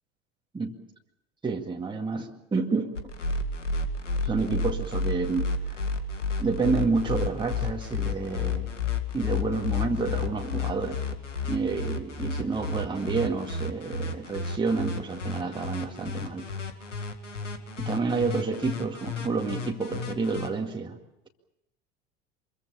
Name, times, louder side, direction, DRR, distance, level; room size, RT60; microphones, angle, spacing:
voice 1, 1.4-3.0 4.2-5.8 6.4-8.7 9.1-11.0 11.5-16.4 17.8-21.0, right 4 dB, 15° right, 1 dB, 2.1 m, -29 dB
sound 1, 3.0-20.5, left 4 dB, 80° left, 2.1 m, -31 dB
26.0 x 22.5 x 7.2 m, 0.84 s
figure-of-eight pair, 75°, 36 cm